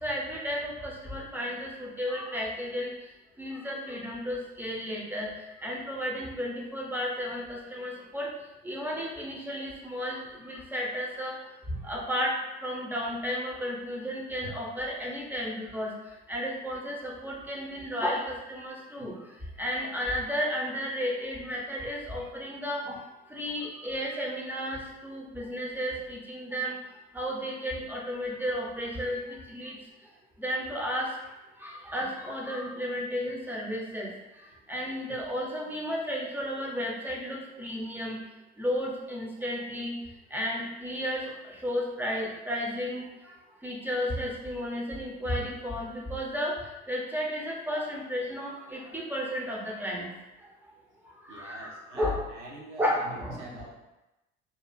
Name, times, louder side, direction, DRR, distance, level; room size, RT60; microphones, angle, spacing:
voice 1, 0.0-2.9 3.4-5.3 5.6-8.3 8.6-11.3 11.7-15.9 16.3-19.2 19.6-23.0 23.3-26.8 27.1-29.8 30.4-31.2 31.6-34.1 34.4-38.2 38.6-39.9 40.3-43.3 43.6-50.1 51.2-51.7 51.9-52.2 52.8-53.5, equal, 5° right, -3 dB, 0.4 m, -33 dB
voice 2, 51.3-53.8, right 2 dB, 80° right, -2 dB, 0.5 m, -46 dB
2.5 x 2.3 x 2.2 m, 0.97 s
figure-of-eight pair, 60°, 35 cm